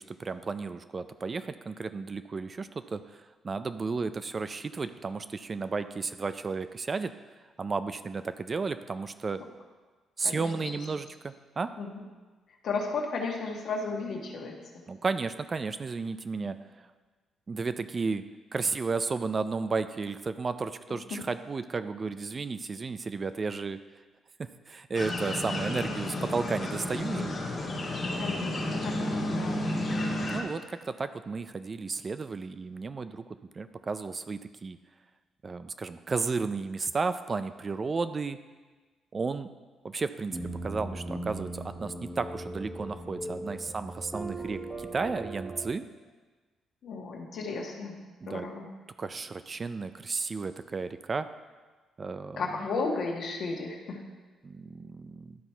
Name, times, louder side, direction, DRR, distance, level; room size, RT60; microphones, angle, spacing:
voice 1, 0.0-3.0 3.4-7.1 7.6-9.4 10.2-11.7 14.9-16.6 17.5-18.3 18.5-23.8 24.7-27.3 30.3-34.8 35.4-38.4 39.1-39.5 39.8-45.8 48.2-48.5 49.0-51.3 52.0-52.4 54.4-55.4, right 4 dB, 35° right, 11 dB, 0.4 m, -33 dB
voice 2, 10.2-10.8 11.8-12.0 12.6-14.5 16.4-16.5 21.1-21.2 28.2-29.6 46.8-47.9 48.2-48.7 52.4-54.0, left 4 dB, 65° left, 0 dB, 1.4 m, -34 dB
sound 1, 24.9-30.4, left 1 dB, 35° left, 1.7 m, -31 dB
sound 2, 40.3-45.7, right 1 dB, 15° right, 1.5 m, -39 dB
12.0 x 4.1 x 4.5 m, 1.3 s
cardioid pair, 90°, 0 cm